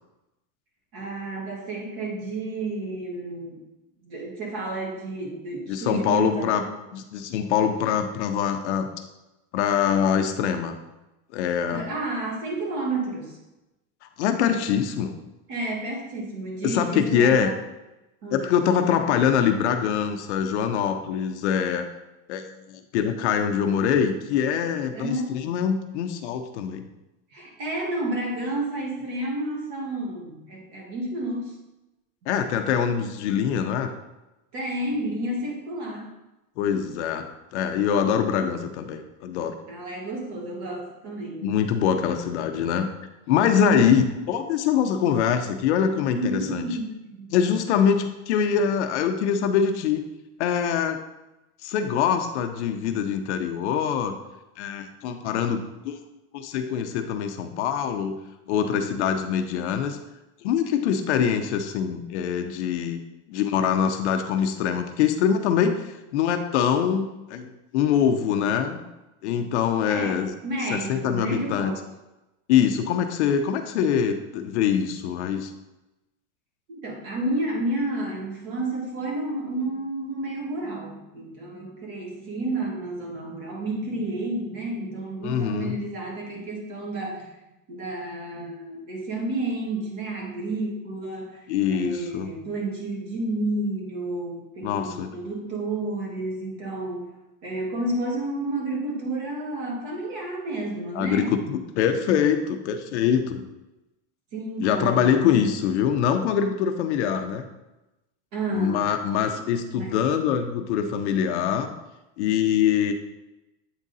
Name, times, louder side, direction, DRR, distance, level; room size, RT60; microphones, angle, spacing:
voice 1, 0.9-3.6 4.0-6.7 11.7-13.4 15.5-17.5 18.2-18.5 24.9-25.3 27.3-31.5 34.5-36.1 39.7-41.5 43.6-43.9 46.1-47.3 69.9-71.8 76.7-87.3 87.7-97.1 97.4-101.4 104.3-105.2 108.3-108.8 109.7-110.0, right 2 dB, 40° right, -1 dB, 1.7 m, -31 dB
voice 2, 5.7-6.6 6.9-8.9 9.5-10.8 11.3-11.9 14.0-15.1 16.6-17.5 18.3-21.9 22.3-26.9 32.3-33.9 36.6-39.6 41.4-42.9 43.3-46.6 47.3-50.0 50.4-51.0 51.6-54.2 54.6-56.0 56.3-58.2 58.5-60.0 60.4-63.0 63.3-68.8 69.2-70.3 70.7-71.7 72.5-75.5 85.2-85.8 91.5-92.3 94.6-95.1 100.9-103.5 104.6-107.4 108.5-111.7 112.2-112.9, left 8 dB, 50° left, 6 dB, 0.5 m, -24 dB
8.3 x 3.7 x 4.0 m, 0.98 s
supercardioid pair, 175°, 46 cm